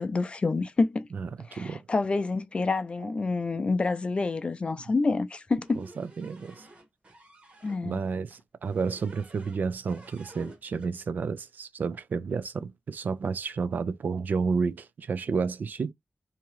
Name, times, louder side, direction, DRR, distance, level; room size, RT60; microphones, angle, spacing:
voice 1, 0.0-1.1 1.5-5.8 7.6-8.0, left 3 dB, 35° left, 0.4 m, -28 dB
voice 2, 1.1-1.8 3.6-3.7 5.8-6.7 7.8-15.9, right 5 dB, 70° right, 0.4 m, -31 dB
sound 1, 5.6-7.8 8.6-9.6 9.9-10.9, right 1 dB, 40° right, 1.1 m, -51 dB
3.5 x 2.8 x 3.1 m
wide cardioid pair, 155°, 3 cm